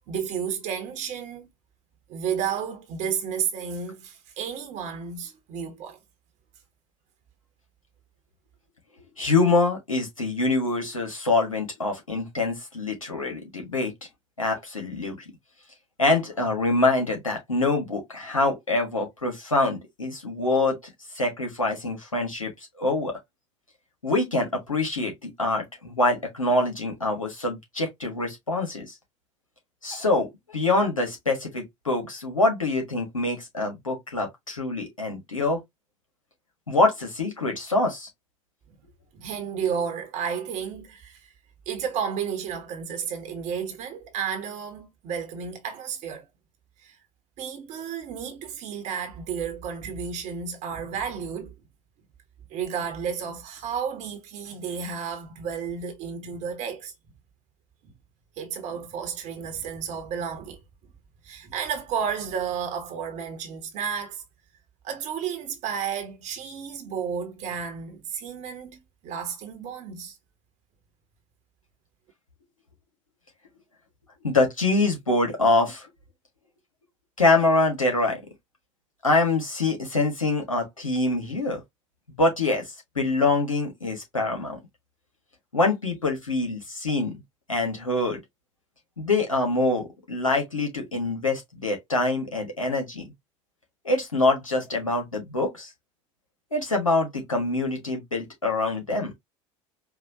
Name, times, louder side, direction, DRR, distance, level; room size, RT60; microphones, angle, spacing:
voice 1, 0.0-1.5 2.1-6.0 39.1-41.3 41.7-46.3 46.8-47.0 47.4-51.5 52.5-56.9 58.4-60.6 61.2-64.2 64.8-70.2, right 7 dB, 45° right, 1.1 m, -32 dB
voice 2, 9.2-13.9 14.4-15.2 16.0-20.8 21.1-22.5 22.8-23.1 24.0-28.9 29.8-35.6 36.7-38.1 74.2-75.9 77.2-78.2 79.0-81.6 82.2-84.6 85.5-87.2 87.5-88.2 89.0-93.0 93.8-95.7 96.5-99.1, left 2 dB, 85° left, 1.5 m, -25 dB
4.8 x 2.7 x 2.7 m
figure-of-eight pair, 70°, 17 cm